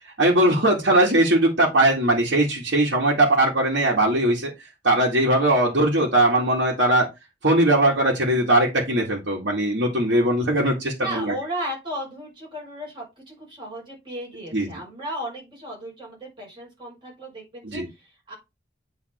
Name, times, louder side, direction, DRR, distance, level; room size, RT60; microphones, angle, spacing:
voice 1, 0.2-4.5 4.8-7.1 7.4-11.3 14.5-14.7 17.6-17.9, right 1 dB, 85° right, -6 dB, 2.3 m, -20 dB
voice 2, 11.0-18.3, right 1 dB, 25° right, -3 dB, 5.2 m, -35 dB
8.7 x 4.1 x 4.5 m, 0.23 s
head